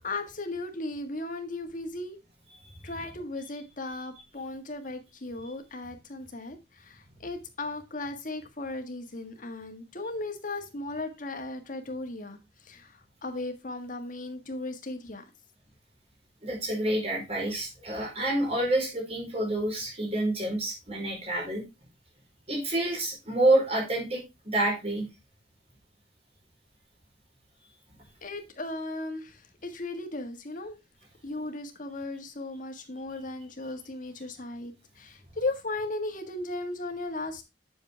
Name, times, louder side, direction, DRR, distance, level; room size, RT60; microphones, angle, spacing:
voice 1, 0.0-2.2 2.8-15.2 28.2-30.8 31.2-37.4, left 2 dB, 50° left, 1.7 m, -36 dB
voice 2, 16.4-21.6 22.5-25.0, right 1 dB, 35° right, 4.7 m, -28 dB
7.9 x 6.8 x 3.4 m
head